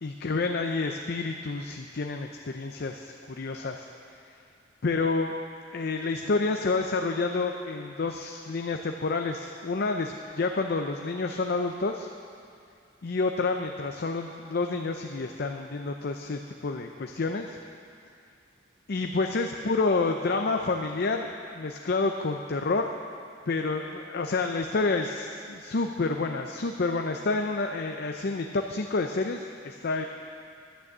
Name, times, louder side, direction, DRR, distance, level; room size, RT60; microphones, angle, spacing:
voice 1, 0.0-4.2 4.8-5.3 5.7-12.1 13.0-17.6 18.9-23.0 23.5-30.0, left 3 dB, 55° left, 4 dB, 0.6 m, -29 dB
11.5 x 9.4 x 7.3 m, 2.4 s
head